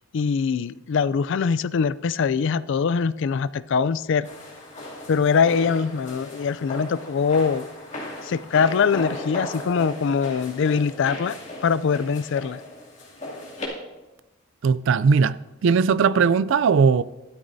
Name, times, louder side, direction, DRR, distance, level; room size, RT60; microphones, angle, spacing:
voice 1, 0.1-4.3 5.1-7.7 8.2-12.6, left 6 dB, 65° left, 0.4 m, -23 dB
sound 1, 4.2-13.7, left 1 dB, 40° left, 2.6 m, -36 dB
voice 2, 14.6-17.0, right 5 dB, 65° right, 0.4 m, -19 dB
15.0 x 12.5 x 2.7 m
head